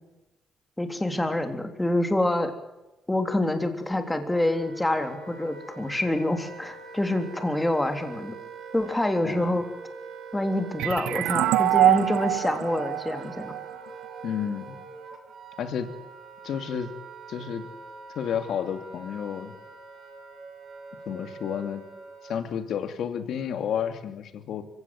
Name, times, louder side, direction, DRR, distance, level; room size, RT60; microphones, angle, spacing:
voice 1, 0.8-2.5 3.1-8.4 8.7-9.6 10.3-13.6, left 1 dB, 10° left, 6 dB, 3.5 m, -26 dB
Wind instrument woodwind instrument, 3.8-22.6, right 4 dB, 60° right, 5.3 m, -44 dB
voice 2, 9.2-9.6 14.2-14.8 15.6-15.9 16.4-16.9 17.3-17.6 18.1-19.5 21.1-21.8 22.2-24.6, left 8 dB, 70° left, 9 dB, 2.7 m, -31 dB
sound 1, 10.8-14.2, right 14 dB, 90° right, 0.8 m, -24 dB
24.5 x 16.5 x 9.6 m, 0.97 s
cardioid pair, 90°, 0 cm